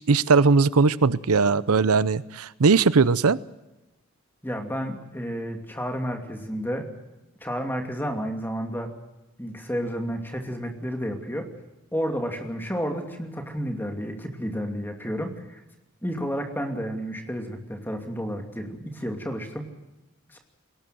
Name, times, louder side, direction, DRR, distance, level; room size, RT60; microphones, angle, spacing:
voice 1, 0.0-3.4, right 4 dB, 80° right, 18 dB, 0.7 m, -19 dB
voice 2, 4.4-6.9 7.4-8.9 9.4-11.5 11.9-15.6 16.0-19.7 20.3-20.4, equal, 10° left, 4 dB, 2.6 m, -31 dB
21.5 x 18.5 x 7.7 m, 1.0 s
head